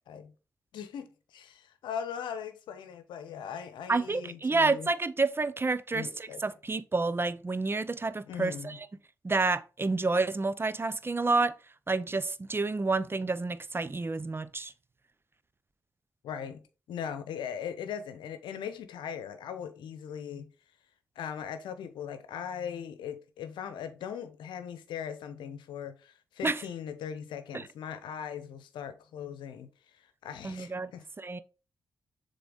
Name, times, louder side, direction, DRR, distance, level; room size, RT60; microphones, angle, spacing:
voice 1, 0.7-4.9 5.9-6.4 8.3-8.8 16.2-16.6 16.9-20.5 21.2-31.0, left 8 dB, 80° left, 0.8 m, -39 dB
voice 2, 3.9-8.9 9.2-11.6 11.9-14.7 26.4-26.6 27.5-27.7 30.4-30.9 31.2-31.4, right 3 dB, 30° right, 0.6 m, -29 dB
6.9 x 3.8 x 3.9 m
supercardioid pair, 40°, 8 cm